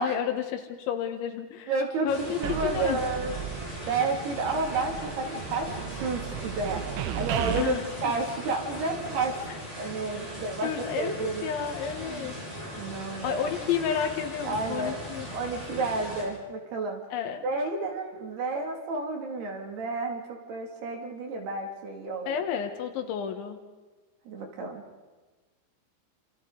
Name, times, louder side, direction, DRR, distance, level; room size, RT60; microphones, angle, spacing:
voice 1, 0.0-1.7 2.0-3.0 7.6-7.9 10.6-12.4 13.2-15.3 17.1-17.5 22.3-23.6, left 8 dB, 75° left, 6 dB, 3.6 m, -31 dB
voice 2, 1.7-3.4 3.9-6.8 7.1-9.4 9.8-11.5 12.0-12.3 12.8-13.4 14.4-15.0 15.3-17.0 17.4-22.3 24.3-24.8, right 3 dB, 60° right, 1 dB, 4.3 m, -31 dB
sound 1, 2.1-16.2, equal, 5° right, 6.2 m, -39 dB
sound 2, 2.4-4.1 4.4-7.6, right 12 dB, 85° right, 3.4 m, -35 dB
28.0 x 27.5 x 4.0 m, 1.3 s
omnidirectional pair, 5.5 m